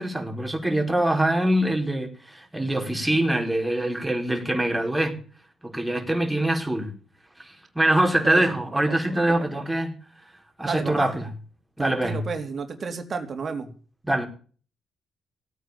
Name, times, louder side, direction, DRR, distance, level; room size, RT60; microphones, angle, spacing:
voice 1, 0.0-5.2 5.6-6.9 7.4-10.0 10.6-11.3 11.8-12.2 14.0-14.3, right 1 dB, 5° right, 3 dB, 5.1 m, -24 dB
voice 2, 8.9-9.2 9.6-9.7 10.6-11.1 11.8-13.7, right 5 dB, 40° right, 5 dB, 3.4 m, -31 dB
17.5 x 9.3 x 8.9 m, 0.42 s
cardioid pair, 90°, 0 cm